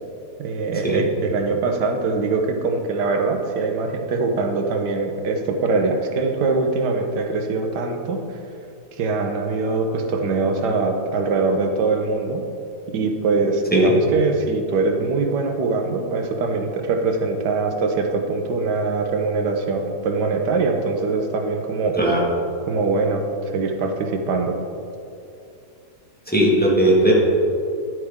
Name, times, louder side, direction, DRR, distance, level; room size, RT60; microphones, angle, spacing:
voice 1, 0.4-8.4 8.9-12.4 12.9-22.0 22.7-24.6, right 3 dB, 90° right, 4 dB, 1.5 m, -23 dB
voice 2, 26.3-27.1, right 1 dB, 5° left, -5 dB, 1.5 m, -17 dB
10.5 x 8.0 x 3.6 m, 2.6 s
omnidirectional pair, 1.7 m